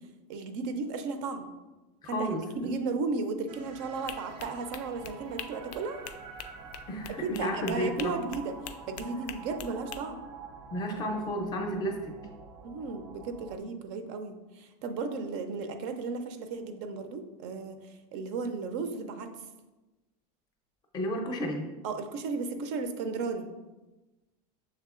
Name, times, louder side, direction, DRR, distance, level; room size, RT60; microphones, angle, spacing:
voice 1, 0.3-1.5 2.1-6.0 7.2-8.5 8.9-10.2 12.6-19.3 21.8-23.5, right 4 dB, 50° right, 8 dB, 0.4 m, -35 dB
voice 2, 2.1-2.7 6.9-8.1 10.7-12.1 20.9-21.7, equal, 20° left, 3 dB, 0.5 m, -32 dB
sound 1, 3.5-13.6, right 5 dB, 90° right, 0.8 m, -48 dB
sound 2, 4.1-10.0, left 9 dB, 90° left, 0.4 m, -44 dB
6.5 x 3.3 x 2.4 m, 1.1 s
supercardioid pair, 160°, 20 cm